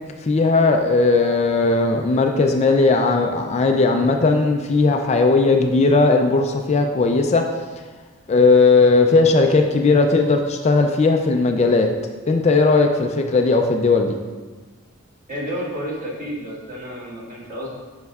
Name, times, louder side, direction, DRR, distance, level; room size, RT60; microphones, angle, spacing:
voice 1, 0.2-7.5 8.3-11.9 12.3-14.2, left 3 dB, 30° left, 3 dB, 0.3 m, -17 dB
voice 2, 15.3-17.7, equal, 40° right, -5 dB, 1.7 m, -30 dB
9.3 x 5.6 x 2.4 m, 1.4 s
head